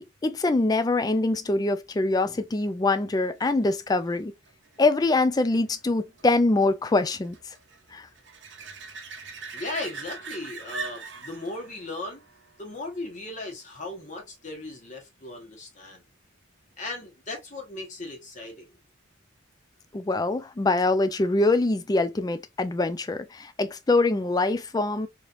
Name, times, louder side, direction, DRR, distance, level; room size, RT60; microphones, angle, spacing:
voice 1, 0.0-4.3 4.8-7.4 7.9-8.1 19.9-25.1, left 2 dB, 20° left, 0.3 m, -24 dB
sound 1, 2.6-13.9 19.5-19.6, right 5 dB, 65° right, 0.6 m, -43 dB
voice 2, 9.5-12.2 12.6-16.0 16.8-18.7, left 2 dB, 40° left, 1.2 m, -37 dB
3.2 x 2.9 x 2.4 m
head